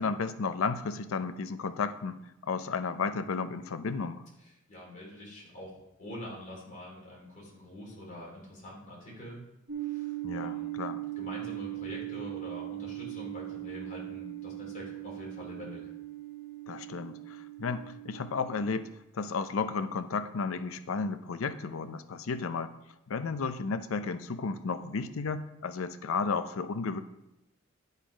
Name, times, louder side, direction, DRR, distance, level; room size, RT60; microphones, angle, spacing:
voice 1, 0.0-4.2 10.2-11.0 16.7-22.7 23.1-27.0, left 4 dB, 90° left, 11 dB, 0.5 m, -33 dB
voice 2, 4.7-9.5 9.8-10.8 11.2-15.9, left 1 dB, 40° left, -4 dB, 2.9 m, -45 dB
sound 1, 9.7-18.7, right 17 dB, 65° right, 1.1 m, -39 dB
10.5 x 4.1 x 5.0 m, 0.89 s
head